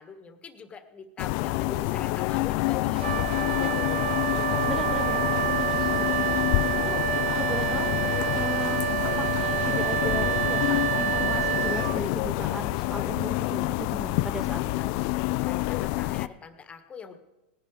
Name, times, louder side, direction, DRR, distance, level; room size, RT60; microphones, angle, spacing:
voice 1, 0.0-4.7 14.6-17.2, left 5 dB, 20° left, 10 dB, 1.4 m, -44 dB
sound 1, 1.2-16.3, left 19 dB, 50° left, 0.4 m, -27 dB
Wind instrument woodwind instrument, 2.9-12.4, right 13 dB, 70° right, 0.5 m, -28 dB
sound 2, 3.4-12.0, right 8 dB, 30° right, 1.4 m, -49 dB
voice 2, 4.7-6.3 6.8-8.1 8.3-8.8 9.2-14.9, right 1 dB, 5° right, 9 dB, 0.5 m, -37 dB
18.5 x 10.5 x 4.9 m, 1.0 s
hypercardioid pair, 115°, 6 cm